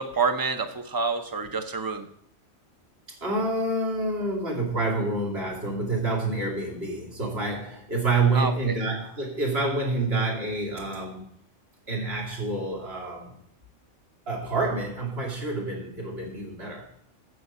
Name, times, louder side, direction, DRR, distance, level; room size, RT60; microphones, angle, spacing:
voice 1, 0.0-2.1 8.3-8.7, right 4 dB, 20° right, 8 dB, 0.8 m, -28 dB
voice 2, 3.2-11.2 11.9-13.4 14.3-16.9, right 2 dB, 55° right, -2 dB, 2.9 m, -28 dB
9.4 x 8.4 x 5.5 m, 0.65 s
omnidirectional pair, 1.3 m